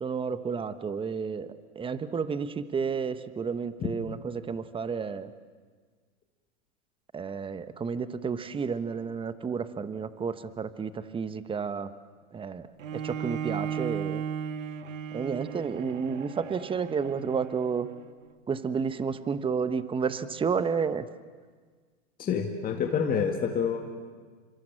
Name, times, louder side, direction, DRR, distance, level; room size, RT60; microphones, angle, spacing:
voice 1, 0.0-5.3 7.1-11.9 12.3-12.7 12.9-14.2 15.1-17.9 18.5-21.1, right 6 dB, 15° right, 12 dB, 1.1 m, -31 dB
Bowed string instrument, 12.8-18.0, right 8 dB, 90° right, 1.6 m, -36 dB
voice 2, 22.2-23.8, left 6 dB, 20° left, 2 dB, 2.3 m, -27 dB
29.5 x 26.0 x 7.7 m, 1.5 s
hypercardioid pair, 125°, 38 cm